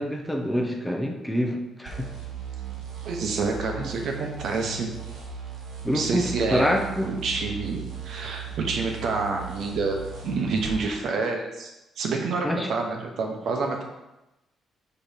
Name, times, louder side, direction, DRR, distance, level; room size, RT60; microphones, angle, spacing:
voice 1, 0.0-2.1 3.8-3.9 5.8-7.1 12.4-12.7, equal, 5° left, 2 dB, 0.8 m, -26 dB
sound 1, 1.8-10.8, right 7 dB, 85° right, 1.6 m, -37 dB
voice 2, 3.0-4.9 5.9-10.0 10.2-13.8, right 4 dB, 65° right, 2 dB, 1.1 m, -28 dB
4.6 x 4.3 x 5.3 m, 0.97 s
cardioid pair, 110°, 0 cm